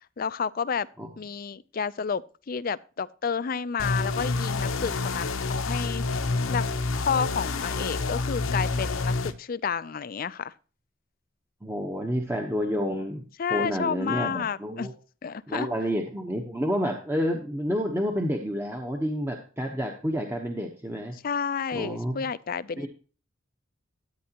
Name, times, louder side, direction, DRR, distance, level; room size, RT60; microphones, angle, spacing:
voice 1, 0.2-0.9 1.2-2.2 2.5-6.2 6.5-6.7 7.1-10.5 13.4-14.9 15.2-15.7 21.1-22.9, left 6 dB, 45° left, 0.4 m, -30 dB
sound 1, 3.8-9.3, left 3 dB, 85° left, 0.9 m, -28 dB
voice 2, 11.6-13.2 13.5-14.9 15.5-21.1 21.7-22.2 22.8-22.9, equal, 10° right, 1.0 m, -29 dB
13.5 x 9.0 x 2.9 m
head